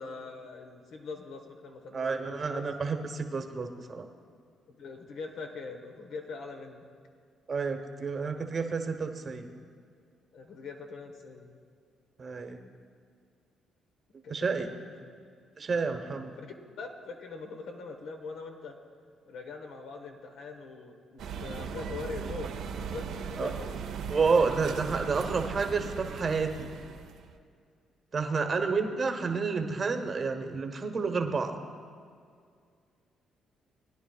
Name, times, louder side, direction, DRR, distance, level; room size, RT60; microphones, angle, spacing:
voice 1, 0.0-2.6 4.7-6.9 10.3-11.6 14.2-15.2 15.8-16.2 16.8-18.8 19.3-22.5 22.8-23.7 28.1-29.0, left 4 dB, 80° left, 3 dB, 1.2 m, -43 dB
voice 2, 1.9-4.1 7.5-9.5 12.2-12.6 14.3-14.7 15.6-16.3 23.4-23.5 24.1-26.7 28.1-31.6, right 4 dB, 40° right, 5 dB, 1.1 m, -30 dB
sound 1, 21.2-27.3, right 6 dB, 80° right, 0.7 m, -38 dB
20.5 x 10.0 x 2.4 m, 2.2 s
cardioid pair, 90°, 0 cm